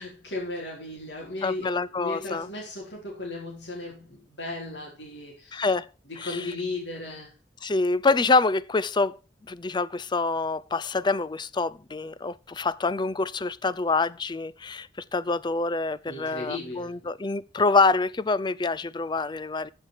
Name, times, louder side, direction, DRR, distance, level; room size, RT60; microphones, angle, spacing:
voice 1, 0.0-5.7 6.1-7.3 16.1-17.1, left 2 dB, 90° left, 4.4 m, -36 dB
voice 2, 1.4-2.5 5.5-5.9 6.2-6.4 7.6-9.2 9.5-19.7, left 3 dB, 25° left, 0.5 m, -26 dB
14.0 x 6.5 x 5.0 m
head